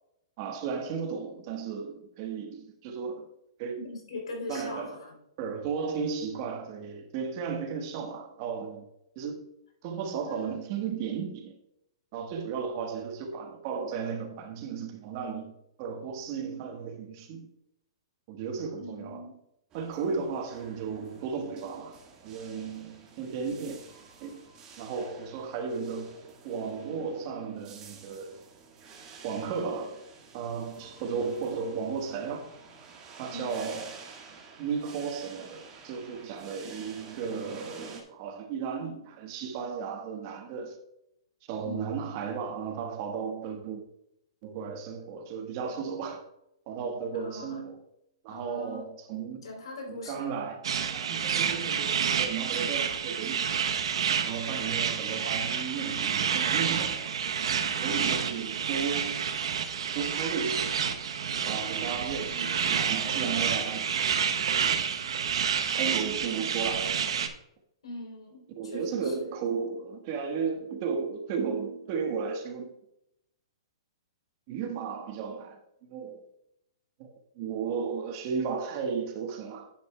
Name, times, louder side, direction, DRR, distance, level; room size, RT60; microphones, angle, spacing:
voice 1, 0.4-3.3 3.6-3.8 4.5-4.9 5.4-8.9 9.1-9.5 9.8-11.6 12.1-15.5 15.8-17.5 18.3-19.2 19.7-23.8 24.2-24.4 24.8-26.2 26.4-28.4 29.2-30.1 30.3-32.5 33.2-34.0 34.6-40.8 41.5-43.8 44.4-46.2 46.7-47.8 48.2-49.5 49.9-50.6 50.9-53.5 54.2-59.3 59.9-60.8 61.4-63.8 64.6-64.8 65.1-65.2 65.5-67.0 68.5-72.8 74.5-76.3 77.0-79.7, right 6 dB, 40° right, 1.3 m, -34 dB
voice 2, 3.8-5.2 10.2-10.6 18.8-19.4 33.3-33.6 41.6-42.0 47.1-47.6 48.3-48.8 49.4-50.3 61.8-61.9 62.3-62.6 67.8-69.3, left 2 dB, 85° left, 3.3 m, -41 dB
sound 1, 19.7-38.0, right 5 dB, 25° right, 1.7 m, -50 dB
sound 2, 50.6-67.3, right 7 dB, 75° right, 0.9 m, -29 dB
10.5 x 8.5 x 2.3 m
hypercardioid pair, 150°, 3 cm